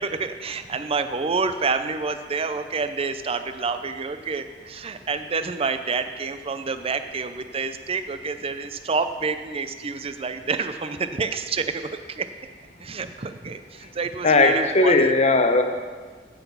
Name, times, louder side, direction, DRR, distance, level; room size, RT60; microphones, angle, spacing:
voice 1, 0.0-12.3 12.8-15.2, right 4 dB, 35° right, 10 dB, 0.5 m, -28 dB
voice 2, 14.2-15.6, left 3 dB, 40° left, 6 dB, 0.9 m, -17 dB
15.5 x 5.9 x 5.6 m, 1.5 s
head